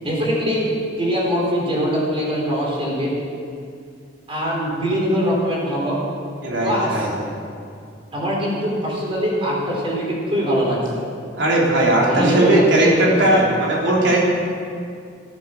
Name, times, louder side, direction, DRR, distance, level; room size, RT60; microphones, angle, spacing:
voice 1, 0.0-0.7 1.0-3.1 4.3-6.0 6.6-7.1 8.1-10.8 12.1-12.5 12.8-13.4, equal, 30° right, -4 dB, 4.2 m, -22 dB
voice 2, 6.4-7.1 11.4-14.2, right 1 dB, 85° right, -4 dB, 3.5 m, -17 dB
14.5 x 9.3 x 7.2 m, 2.4 s
head